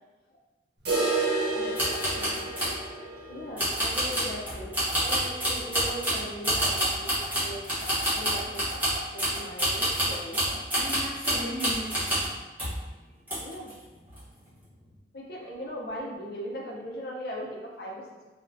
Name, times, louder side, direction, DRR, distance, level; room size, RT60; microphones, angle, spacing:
sound 1, 0.9-6.7 7.0-7.1 7.4-7.5 8.0-8.1 9.0-9.1, right 3 dB, 65° right, 1.0 m, -32 dB
sound 2, 1.7-2.8 3.6-12.3 12.6-12.8 13.3-13.7 14.1-14.2, right 1 dB, 10° right, 0.9 m, -28 dB
voice 1, 2.1-2.5 10.7-12.6 12.9-13.2 14.2-14.7, equal, 5° left, -7 dB, 0.4 m, -39 dB
voice 2, 3.3-7.6 8.1-10.6 13.4-13.7 15.1-18.3, equal, 55° left, -3 dB, 0.6 m, -39 dB
3.6 x 2.2 x 2.5 m, 1.2 s
head